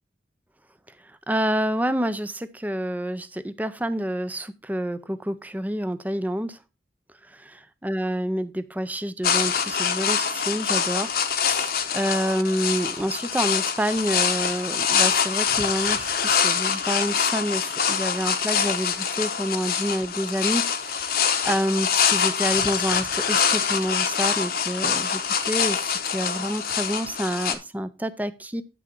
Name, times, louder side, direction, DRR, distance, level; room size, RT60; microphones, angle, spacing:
voice 1, 1.0-6.6 7.3-28.6, equal, 10° right, 13 dB, 0.5 m, -28 dB
sound 1, 9.2-27.5, left 7 dB, 50° left, 0.9 m, -24 dB
9.2 x 6.2 x 4.4 m, 0.29 s
head